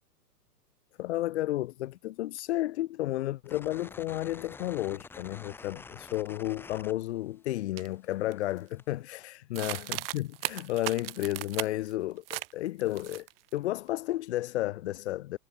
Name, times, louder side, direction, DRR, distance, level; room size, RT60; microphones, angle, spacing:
voice 1, 1.0-13.3 13.5-15.4, left 15 dB, 40° left, 1.1 m, -32 dB
sound 1, 3.5-7.5 7.8-8.9, left 4 dB, 5° left, 0.9 m, -48 dB
sound 2, 7.8-7.9 8.3-8.7 9.6-11.9 12.3-12.5 12.8-13.5, right 17 dB, 35° right, 0.9 m, -37 dB
figure-of-eight pair, 120°, 49 cm